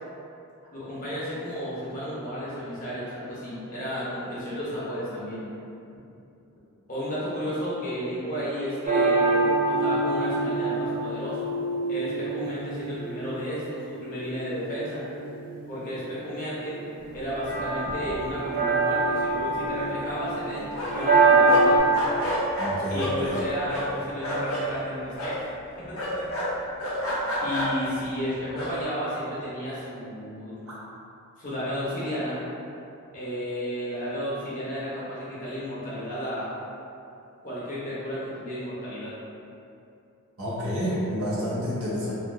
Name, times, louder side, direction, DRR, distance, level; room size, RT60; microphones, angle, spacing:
voice 1, 0.7-5.5 6.9-11.5 11.9-15.0 15.7-16.8 17.1-20.7 20.9-21.8 22.9-25.4 25.8-26.2 27.4-30.6 31.4-32.4 33.1-36.5 37.4-39.1, equal, 35° left, -10 dB, 0.8 m, -33 dB
sound 1, 8.8-21.8, right 3 dB, 35° right, 0.5 m, -25 dB
sound 2, 17.6-17.7 17.9-18.5 18.8-18.9 19.2-21.1 21.5-24.7 25.2-25.4 25.9-27.9 28.5-28.7, equal, 70° left, 0.7 m, -30 dB
voice 2, 22.6-23.3 30.7-30.8 40.4-42.1, equal, 70° right, -8 dB, 0.8 m, -29 dB
3.1 x 2.5 x 2.6 m, 2.7 s
head